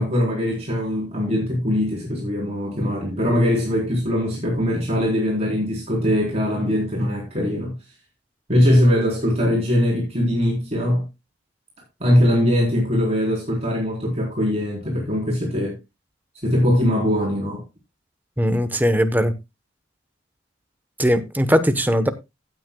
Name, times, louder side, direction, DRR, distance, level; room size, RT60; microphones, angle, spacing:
voice 1, 0.0-7.7 8.5-11.1 12.0-15.8 16.4-17.6, equal, 35° right, 4.1 m, -21 dB
voice 2, 18.4-19.3 21.0-22.1, equal, 10° right, 1.0 m, -19 dB
16.0 x 9.1 x 2.3 m
head